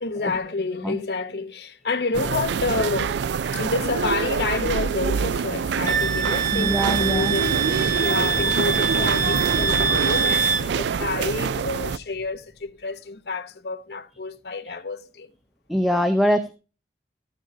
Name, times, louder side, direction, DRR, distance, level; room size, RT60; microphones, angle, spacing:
voice 1, 0.0-3.2 3.5-15.3, left 3 dB, 65° left, 1.0 m, -29 dB
sound 1, 2.1-12.0, right 6 dB, 80° right, 0.4 m, -26 dB
Wind instrument woodwind instrument, 5.8-10.6, right 6 dB, 45° right, 0.7 m, -24 dB
voice 2, 6.5-7.3 15.7-16.5, equal, ahead, 0.7 m, -22 dB
sound 2, 6.7-12.4, left 1 dB, 45° left, 1.7 m, -34 dB
14.5 x 7.3 x 2.7 m
head